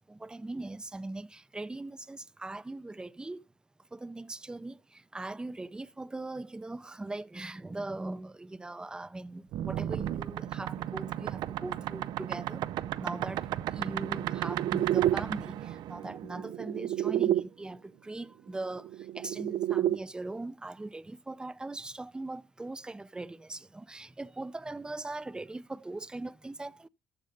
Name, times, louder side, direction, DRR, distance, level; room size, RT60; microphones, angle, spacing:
voice 1, 0.1-3.4 3.9-12.6 13.0-13.5 13.7-18.9 19.1-26.9, right 2 dB, 10° right, 0.5 m, -40 dB
sound 1, 9.5-17.4 18.7-20.0, right 12 dB, 70° right, 0.5 m, -31 dB
14.0 x 5.3 x 5.3 m
cardioid pair, 105°, 8 cm